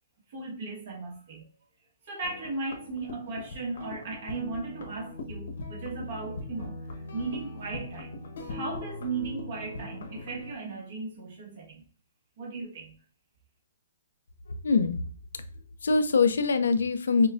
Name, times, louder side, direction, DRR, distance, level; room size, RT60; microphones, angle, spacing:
voice 1, 0.3-1.5 2.0-11.8 12.4-13.0, right 3 dB, 50° right, 1.3 m, -37 dB
sound 1, 2.2-10.5, left 2 dB, 65° left, 1.0 m, -41 dB
voice 2, 14.5-15.0 15.8-17.3, left 4 dB, 85° left, 0.6 m, -23 dB
6.3 x 2.3 x 2.5 m
hypercardioid pair, 155°, 0 cm